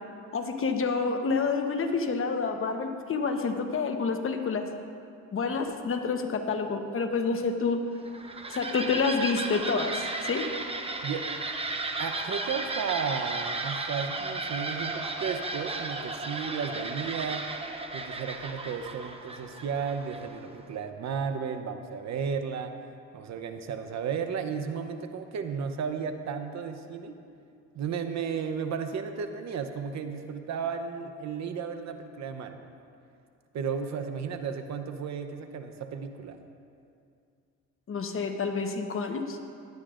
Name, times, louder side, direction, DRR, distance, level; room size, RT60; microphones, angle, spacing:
voice 1, 0.3-4.7 5.3-7.8 8.5-10.5 37.9-39.4, left 4 dB, 45° left, 5 dB, 1.0 m, -28 dB
sound 1, 8.0-20.5, right 3 dB, 20° right, 0.9 m, -35 dB
voice 2, 12.0-17.5 17.9-22.7 23.1-27.2 27.7-32.7 33.5-36.4, right 6 dB, 65° right, 7 dB, 0.9 m, -34 dB
16.5 x 11.5 x 2.5 m, 2.4 s
cardioid pair, 90°, 30 cm